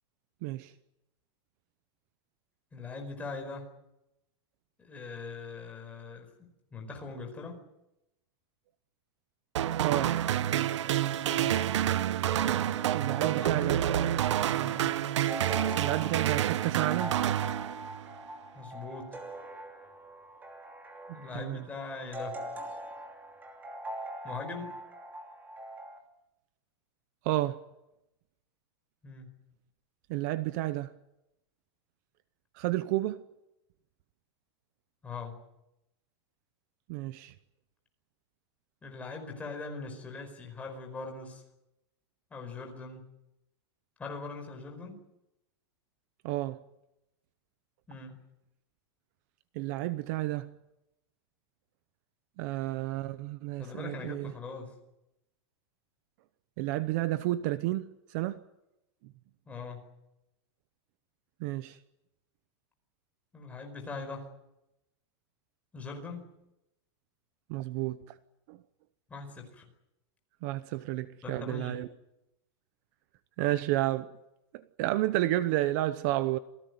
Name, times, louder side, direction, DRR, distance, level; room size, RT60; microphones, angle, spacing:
voice 1, 0.4-0.7 9.8-10.2 12.9-13.8 15.8-17.2 21.3-21.7 27.2-27.7 30.1-30.9 32.5-33.2 36.9-37.3 46.2-46.7 49.5-50.6 52.4-54.3 56.6-58.4 59.0-59.1 61.4-61.8 67.5-68.2 68.5-68.6 70.4-71.9 73.4-74.2 74.5-76.4, right 16 dB, 40° right, 0.9 m, -31 dB
voice 2, 2.7-3.7 4.8-7.6 11.3-11.6 13.1-13.7 14.6-15.0 18.5-19.2 21.1-22.4 24.2-24.8 29.0-29.3 35.0-35.3 38.8-41.4 42.3-43.0 44.0-45.0 47.9-48.2 53.6-54.8 59.5-59.9 63.3-64.3 65.7-66.2 69.1-69.7 71.2-71.8, left 4 dB, 10° left, 4.9 m, -41 dB
sound 1, 9.6-18.1, right 11 dB, 90° right, 1.1 m, -28 dB
sound 2, 12.3-26.0, right 1 dB, 10° right, 2.8 m, -43 dB
27.5 x 18.0 x 9.5 m
supercardioid pair, 175°, 15 cm